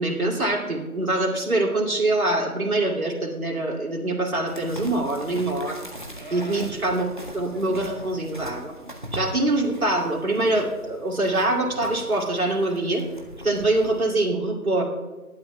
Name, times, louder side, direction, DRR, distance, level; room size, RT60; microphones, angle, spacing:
voice 1, 0.0-5.8 6.3-7.1 7.3-8.7 9.1-13.0 13.4-14.8, right 2 dB, 70° right, -2 dB, 2.6 m, -24 dB
sound 1, 4.5-14.1, right 1 dB, 35° right, 1.0 m, -40 dB
19.0 x 11.5 x 2.3 m, 1.2 s
figure-of-eight pair, 175°, 44 cm